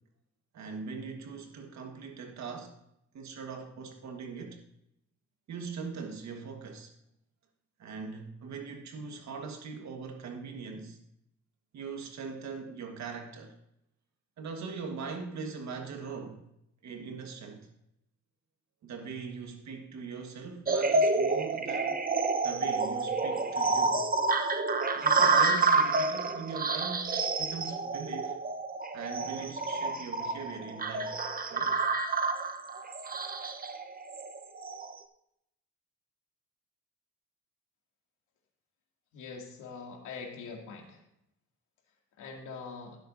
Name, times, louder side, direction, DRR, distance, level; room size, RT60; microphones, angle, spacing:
voice 1, 0.5-2.7 3.1-4.6 5.5-6.9 7.8-11.0 11.7-13.5 14.4-16.4 16.8-17.7 18.8-22.0 22.4-24.0 24.9-28.4 28.9-31.2 31.5-31.8, right 5 dB, 65° right, 1.5 m, -41 dB
sound 1, 20.7-34.9, right 3 dB, 30° right, 0.9 m, -29 dB
voice 2, 39.1-40.8 42.2-43.0, left 5 dB, 85° left, 2.4 m, -43 dB
16.0 x 7.7 x 2.6 m
cardioid pair, 90°, 30 cm